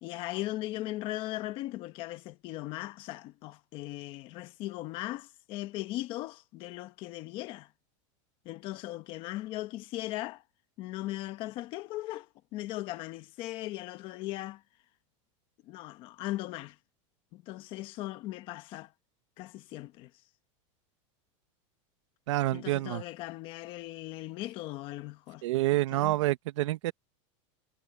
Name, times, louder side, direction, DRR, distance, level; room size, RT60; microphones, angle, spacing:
voice 1, 0.0-7.7 8.4-10.4 10.8-14.6 15.6-16.8 17.3-18.9 19.4-20.1 22.5-25.4 25.7-26.2, left 17 dB, 35° left, 1.1 m, -38 dB
voice 2, 22.3-23.0 25.4-26.9, right 16 dB, 70° right, 1.2 m, -28 dB
supercardioid pair, 175°, 16 cm